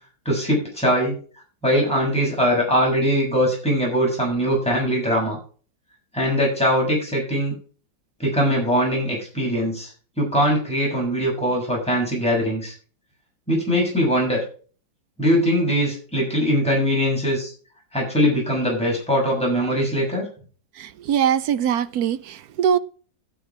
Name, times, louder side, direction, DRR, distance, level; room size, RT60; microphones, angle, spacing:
voice 1, 0.2-1.2 1.6-5.4 6.1-7.5 8.2-9.9 10.2-12.7 13.5-14.4 15.2-17.5 17.9-20.2, equal, 5° left, 6.6 m, -21 dB
voice 2, 20.8-22.8, right 8 dB, 65° right, 1.1 m, -22 dB
12.5 x 7.9 x 4.9 m
omnidirectional pair, 1.9 m